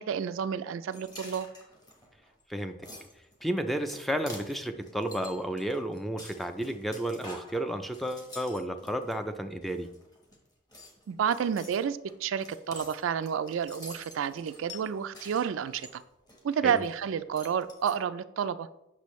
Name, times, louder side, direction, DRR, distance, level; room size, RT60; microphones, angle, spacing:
voice 1, 0.0-1.5 11.1-16.0 16.4-18.7, right 7 dB, 70° right, 13 dB, 0.3 m, -30 dB
sound 1, 0.9-9.1 9.6-10.4 10.7-17.0 17.3-17.9, left 1 dB, 20° left, 1.1 m, -48 dB
voice 2, 3.4-9.9 16.6-16.8, right 1 dB, ahead, 7 dB, 0.4 m, -32 dB
8.3 x 6.1 x 3.1 m, 0.87 s
head